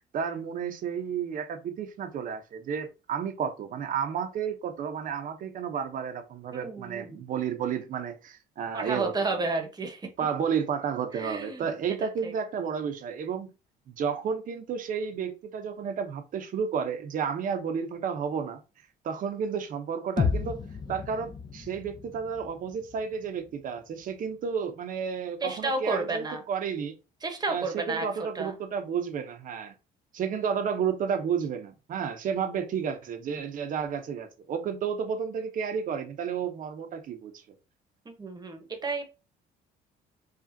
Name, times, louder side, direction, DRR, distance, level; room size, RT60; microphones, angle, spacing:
voice 1, 0.0-9.4 10.2-13.5 13.9-18.6 19.0-20.6 20.9-26.9 27.5-29.7 30.1-37.4, right 7 dB, 55° right, 0.7 m, -32 dB
voice 2, 6.5-7.2 8.7-10.1 11.1-11.7 12.0-12.3 25.4-26.4 27.2-28.5 38.0-39.0, right 3 dB, 25° right, 1.0 m, -32 dB
sound 1, 20.2-24.1, left 5 dB, 25° left, 0.5 m, -33 dB
5.0 x 2.4 x 2.7 m
cardioid pair, 110°, 17 cm